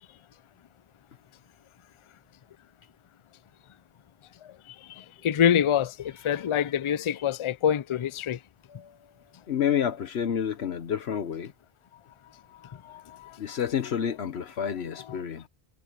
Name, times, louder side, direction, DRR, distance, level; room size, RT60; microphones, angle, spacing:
voice 1, 5.2-5.9 6.2-8.4, left 9 dB, 55° left, 0.3 m, -24 dB
voice 2, 6.2-6.7 8.7-8.9 9.5-11.5 13.4-15.5, left 8 dB, 80° left, 1.2 m, -30 dB
omnidirectional pair, 1.1 m